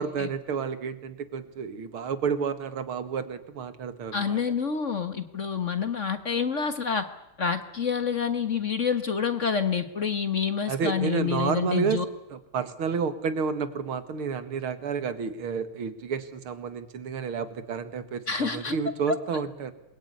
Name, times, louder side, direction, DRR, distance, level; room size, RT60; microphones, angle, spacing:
voice 1, 0.0-4.4 10.7-12.0 12.3-19.7, right 6 dB, 80° right, 11 dB, 2.6 m, -30 dB
voice 2, 4.1-7.0 7.4-12.0 18.3-18.8 19.1-19.2, left 6 dB, 40° left, 10 dB, 1.5 m, -28 dB
27.5 x 22.0 x 9.7 m, 0.92 s
omnidirectional pair, 2.3 m